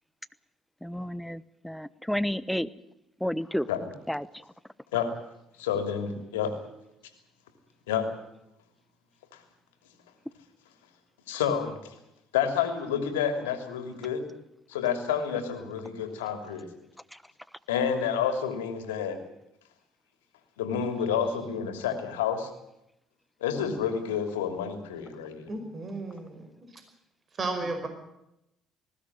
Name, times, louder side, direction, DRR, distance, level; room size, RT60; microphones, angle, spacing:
voice 1, 0.8-2.7 3.2-3.7 4.1-4.4 17.1-17.2, equal, 5° left, 16 dB, 1.1 m, -31 dB
voice 2, 5.6-6.5 7.9-8.1 9.3-9.4 11.3-11.9 12.3-14.2 14.7-16.7 17.7-19.2 20.6-22.5 23.4-25.5, left 7 dB, 90° left, 7 dB, 3.0 m, -29 dB
voice 3, 25.5-26.5 27.4-27.9, right 3 dB, 40° right, 6 dB, 5.3 m, -33 dB
20.0 x 16.0 x 9.9 m, 0.84 s
hypercardioid pair, 65°, 0 cm